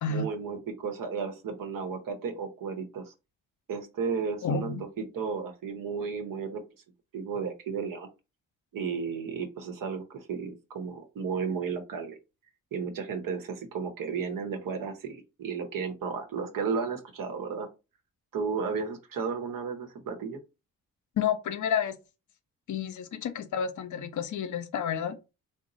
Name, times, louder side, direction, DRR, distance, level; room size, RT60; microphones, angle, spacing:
voice 1, 0.1-3.1 3.7-6.6 7.1-8.1 8.7-12.2 12.7-17.7 18.3-20.4, right 5 dB, 70° right, 0.9 m, -33 dB
voice 2, 4.4-4.8 21.2-22.0 22.7-25.2, left 7 dB, 60° left, 0.6 m, -30 dB
3.0 x 2.1 x 3.8 m
supercardioid pair, 50°, 35 cm